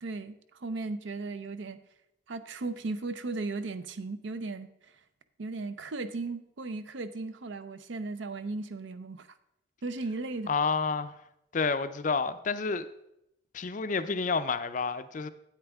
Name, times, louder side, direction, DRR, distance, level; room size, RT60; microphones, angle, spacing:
voice 1, 0.0-1.8 2.3-4.7 5.4-9.3 9.8-10.5, right 3 dB, 70° right, 0.6 m, -36 dB
voice 2, 10.5-11.1 11.5-12.9 13.5-15.3, left 4 dB, 40° left, 0.4 m, -29 dB
8.8 x 8.8 x 3.5 m
head